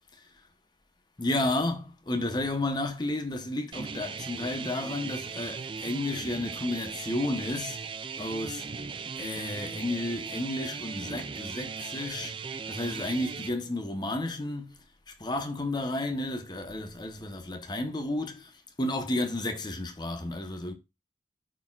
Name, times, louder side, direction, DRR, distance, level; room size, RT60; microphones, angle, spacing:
voice 1, 1.2-7.8 8.2-8.7 9.2-12.3 12.7-14.7 15.1-18.5 18.8-20.7, left 1 dB, 20° left, 0.8 m, -32 dB
sound 1, 3.7-13.5, right 5 dB, 25° right, 0.3 m, -38 dB
12.5 x 4.3 x 2.3 m
head